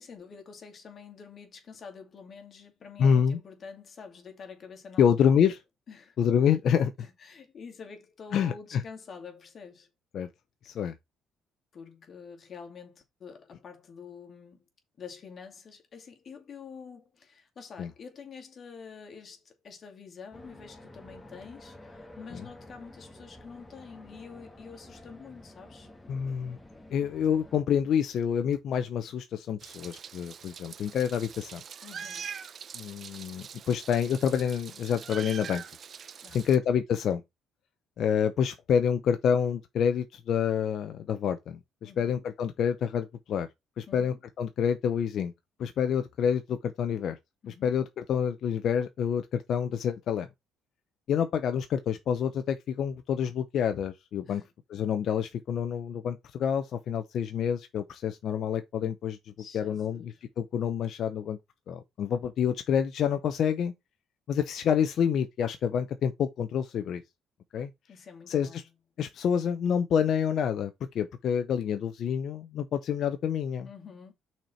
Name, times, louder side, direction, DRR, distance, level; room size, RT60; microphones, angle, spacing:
voice 1, 0.0-5.5 5.9-6.2 7.0-9.9 11.7-14.6 15.0-25.9 31.8-32.3 36.2-36.6 41.8-42.2 43.9-44.2 47.4-47.7 54.3-54.5 59.4-60.2 67.9-68.7 73.6-74.1, left 6 dB, 45° left, 2.4 m, -47 dB
voice 2, 3.0-3.4 5.0-5.6 6.2-6.9 8.3-8.8 10.1-10.3 10.6-10.9 17.8-17.9 26.1-26.6 26.9-31.6 32.7-35.6 36.3-37.2 38.0-43.5 43.8-45.3 45.6-47.2 47.5-50.3 51.1-54.4 54.7-61.4 61.7-63.7 64.3-67.0 67.5-67.7 68.3-68.6 69.0-73.7, left 8 dB, 60° left, 0.8 m, -28 dB
sound 1, 20.3-27.6, left 1 dB, 15° left, 2.1 m, -50 dB
Meow, 29.6-36.6, right 7 dB, 50° right, 0.7 m, -43 dB
6.1 x 4.4 x 5.6 m
cardioid pair, 90°, 0 cm